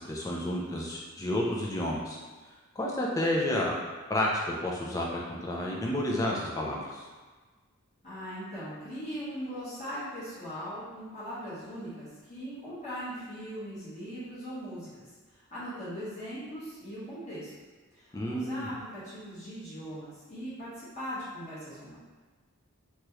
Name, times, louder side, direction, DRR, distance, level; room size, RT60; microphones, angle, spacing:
voice 1, 0.0-2.2 2.8-3.7 4.1-7.0 18.1-18.7, left 1 dB, 15° left, -3 dB, 0.4 m, -30 dB
voice 2, 8.0-17.5 17.9-21.9, equal, 30° left, -13 dB, 1.2 m, -40 dB
3.0 x 2.3 x 3.1 m, 1.3 s
head